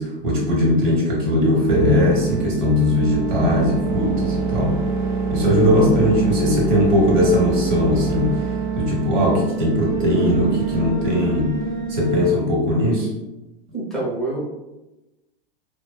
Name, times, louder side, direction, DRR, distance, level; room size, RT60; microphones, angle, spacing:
voice 1, 0.0-4.8 5.3-8.3 8.7-11.5 11.9-13.1, left 1 dB, 55° right, -3 dB, 1.0 m, -19 dB
sound 1, 1.7-12.3, right 5 dB, 40° right, 0.4 m, -25 dB
voice 2, 13.7-14.4, right 2 dB, ahead, -6 dB, 0.7 m, -27 dB
2.4 x 2.3 x 2.2 m, 1.0 s
figure-of-eight pair, 100°, 29 cm